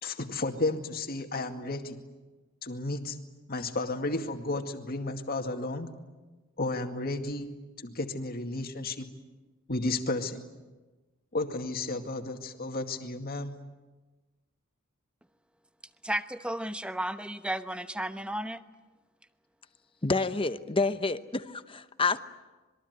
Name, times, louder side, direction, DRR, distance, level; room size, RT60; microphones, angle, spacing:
voice 1, 0.0-2.0 2.6-3.2 3.5-5.9 6.6-7.5 7.8-9.1 9.7-10.5 11.3-13.5, left 2 dB, 45° left, 5 dB, 2.2 m, -33 dB
voice 2, 16.0-18.6, right 1 dB, 5° right, 10 dB, 0.9 m, -33 dB
voice 3, 20.0-22.2, left 3 dB, 25° left, 11 dB, 0.9 m, -28 dB
26.5 x 22.0 x 9.5 m, 1.2 s
head